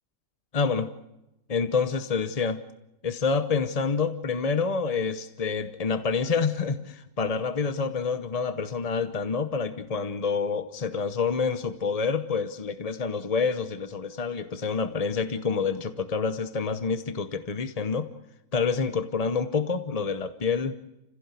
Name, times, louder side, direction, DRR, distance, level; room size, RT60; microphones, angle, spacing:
voice 1, 0.5-0.9 1.5-2.6 3.0-18.1 18.5-20.7, left 5 dB, 35° left, 10 dB, 0.6 m, -27 dB
30.0 x 16.0 x 8.2 m, 0.92 s
omnidirectional pair, 1.9 m